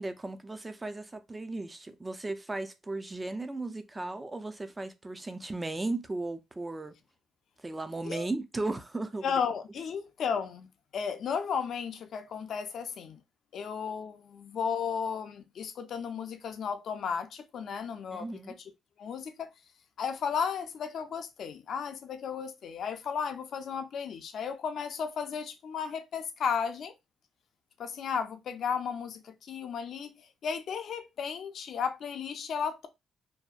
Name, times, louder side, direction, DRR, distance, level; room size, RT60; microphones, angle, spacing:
voice 1, 0.0-7.0 7.6-9.3 18.1-18.6, right 2 dB, 20° right, 0.3 m, -36 dB
voice 2, 9.2-10.7 10.9-13.2 13.5-18.3 19.0-19.5 20.0-26.9 27.8-30.1 30.4-32.9, left 6 dB, 65° left, 0.4 m, -34 dB
2.6 x 2.1 x 2.3 m
cardioid pair, 90°, 0 cm